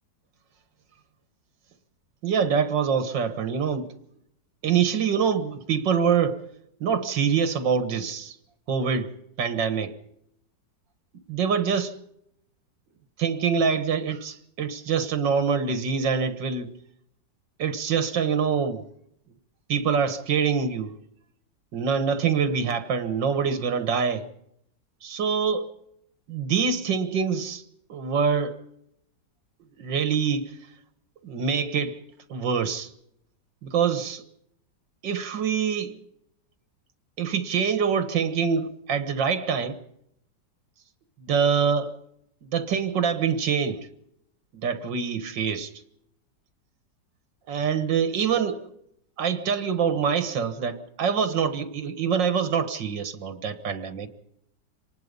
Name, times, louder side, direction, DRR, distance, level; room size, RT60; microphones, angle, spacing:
voice 1, 2.2-3.9 4.6-6.4 6.8-8.4 8.7-9.1 9.4-10.0 11.3-11.9 13.2-16.7 17.6-18.8 19.7-20.9 21.7-24.3 25.0-25.7 26.3-27.6 27.9-28.6 29.8-30.6 31.2-32.0 32.3-32.9 33.6-34.2 35.0-36.0 37.2-39.8 41.2-41.9 42.4-43.9 44.6-45.7 47.5-48.7 49.2-54.1, right 6 dB, 85° right, 2.1 m, -25 dB
26.0 x 19.5 x 5.4 m
omnidirectional pair, 1.9 m